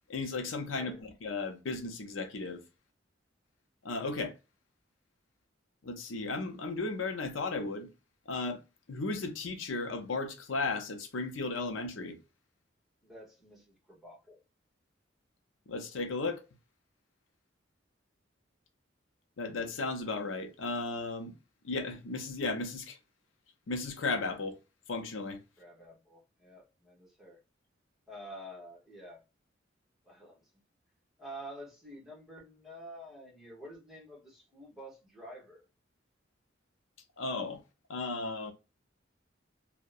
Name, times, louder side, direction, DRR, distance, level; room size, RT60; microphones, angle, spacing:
voice 1, 0.1-2.6 3.8-4.3 5.8-7.9 8.3-8.6 8.9-12.2 15.7-16.4 19.4-21.3 21.6-23.0 23.7-24.6 24.9-25.4 37.2-37.6 37.9-38.5, left 3 dB, 85° left, 0.6 m, -35 dB
voice 2, 13.0-14.4 25.6-27.4 28.1-29.2 30.0-30.5 31.2-35.6, equal, ahead, 1.0 m, -49 dB
2.7 x 2.1 x 2.4 m
head